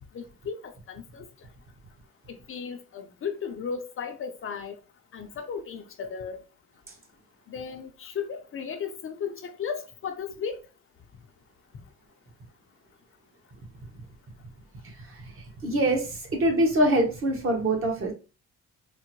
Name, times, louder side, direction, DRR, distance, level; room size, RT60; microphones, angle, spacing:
voice 1, 0.1-1.2 2.3-4.8 5.1-6.4 7.5-10.6, left 6 dB, 45° left, 0.5 m, -35 dB
voice 2, 15.1-18.1, right 1 dB, 45° right, 1.1 m, -24 dB
3.7 x 2.1 x 2.9 m
cardioid pair, 90°, 30 cm